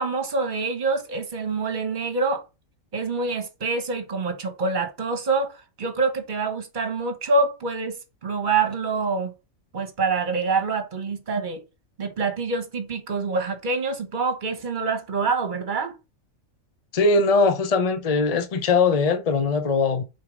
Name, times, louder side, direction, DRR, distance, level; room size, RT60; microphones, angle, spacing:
voice 1, 0.0-2.4 2.9-9.3 9.7-11.6 12.0-15.9, right 4 dB, 40° right, 1.3 m, -26 dB
voice 2, 16.9-20.0, left 4 dB, 35° left, 0.8 m, -21 dB
6.4 x 4.5 x 5.1 m
omnidirectional pair, 1.4 m